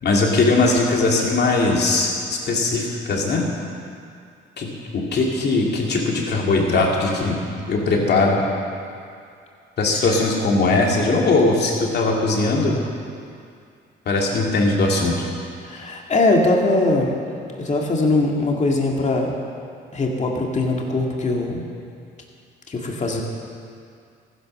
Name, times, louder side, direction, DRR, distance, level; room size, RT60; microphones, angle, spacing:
voice 1, 0.0-3.5 4.6-7.4 7.7-8.4 9.8-12.8 14.1-15.3, left 3 dB, 55° left, -1 dB, 3.0 m, -20 dB
voice 2, 15.6-17.1 17.6-19.3 19.9-21.6 22.7-23.2, left 2 dB, 35° left, 0 dB, 2.3 m, -21 dB
15.0 x 11.0 x 6.6 m, 2.3 s
cardioid pair, 90°, 20 cm